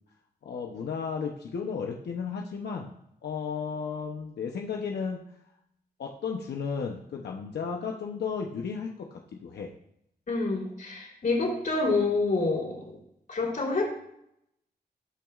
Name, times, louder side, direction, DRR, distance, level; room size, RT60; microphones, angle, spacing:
voice 1, 0.4-2.9 3.2-5.2 6.0-9.7, left 6 dB, 90° left, 1 dB, 0.8 m, -34 dB
voice 2, 10.3-13.0 13.3-13.9, left 3 dB, 55° left, -2 dB, 3.5 m, -27 dB
18.0 x 6.0 x 2.5 m, 0.77 s
wide cardioid pair, 95°, 17 cm